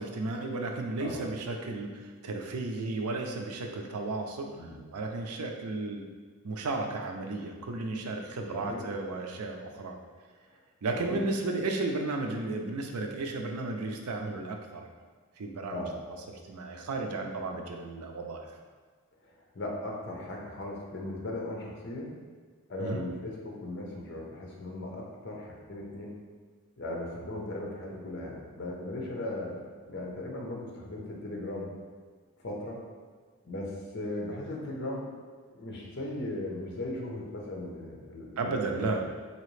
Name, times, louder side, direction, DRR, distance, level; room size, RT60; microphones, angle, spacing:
voice 1, 0.0-4.6 4.9-6.1 6.4-10.0 10.8-14.9 15.4-15.8 16.5-18.5 22.8-23.0 38.4-39.0, right 3 dB, 90° right, 3 dB, 0.5 m, -33 dB
voice 2, 8.5-8.9 10.5-10.6 10.9-11.2 15.7-15.9 19.2-22.2 22.7-26.1 26.8-29.6 29.9-31.7 32.4-32.8 33.4-35.0 35.5-39.0, left 1 dB, 50° left, -2 dB, 0.8 m, -38 dB
4.1 x 2.9 x 3.2 m, 1.5 s
head